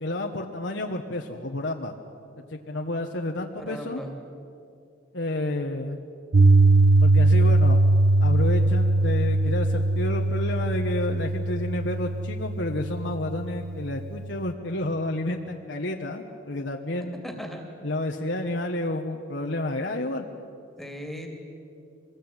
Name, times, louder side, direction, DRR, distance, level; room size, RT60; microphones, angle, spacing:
voice 1, 0.0-1.9 2.5-4.0 5.1-6.0 7.0-7.8 8.2-17.2 17.8-20.3, left 1 dB, 65° left, 2 dB, 1.4 m, -30 dB
voice 2, 3.6-4.1 17.2-17.6 20.8-21.3, equal, ahead, 3 dB, 2.8 m, -37 dB
Piano, 6.3-14.4, right 2 dB, 90° right, 1.0 m, -21 dB
25.5 x 21.5 x 9.1 m, 2.5 s
head